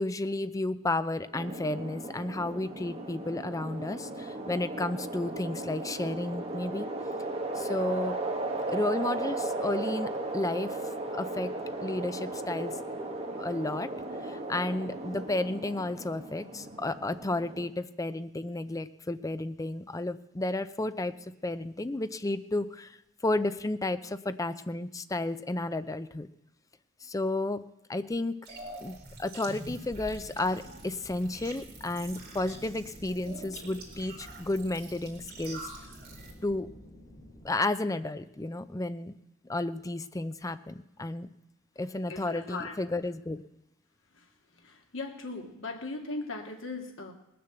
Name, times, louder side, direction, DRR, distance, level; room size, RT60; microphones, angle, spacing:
voice 1, 0.0-6.9 7.6-8.2 8.7-10.8 11.1-11.5 11.8-12.8 13.4-13.9 14.2-21.1 21.4-23.0 23.2-26.3 27.0-27.6 27.9-28.3 28.8-35.7 36.4-36.7 37.4-39.1 39.4-41.3 41.8-43.4, left 2 dB, 15° left, 12 dB, 0.5 m, -32 dB
sound 1, 1.3-17.7, right 2 dB, 30° right, 1.6 m, -36 dB
sound 2, 28.5-36.3, right 2 dB, 50° right, 3.4 m, -46 dB
sound 3, 30.0-37.5, equal, 45° left, 4.2 m, -51 dB
voice 2, 42.1-42.8 44.6-47.1, left 3 dB, 70° left, 3 dB, 2.0 m, -38 dB
19.0 x 6.8 x 7.9 m, 0.89 s
head